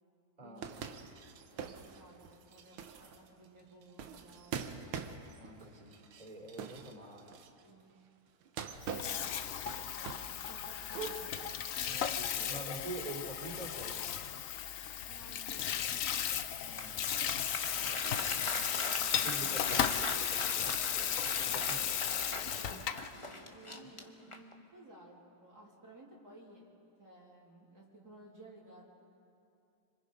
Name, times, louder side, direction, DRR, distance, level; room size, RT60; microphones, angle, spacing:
voice 1, 0.4-5.2 7.6-7.9 9.0-9.4 9.8-11.6 15.0-16.2 23.5-26.7 27.0-28.9, right 2 dB, 50° right, -5 dB, 3.5 m, -57 dB
sound 1, 0.6-7.7 8.4-10.4 10.7-12.2, right 6 dB, 85° right, 1.9 m, -44 dB
voice 2, 5.3-7.3 11.8-14.0 16.5-17.2 17.7-18.9 19.1-21.9, right 2 dB, 20° right, 1 dB, 3.3 m, -47 dB
Water tap faucet / Sink (filling or washing), 8.8-23.1, left 9 dB, 70° left, 0.7 m, -35 dB
Applause, 16.5-24.6, left 2 dB, 20° left, 0.9 m, -41 dB
26.5 x 25.5 x 5.3 m, 2.6 s
omnidirectional pair, 2.2 m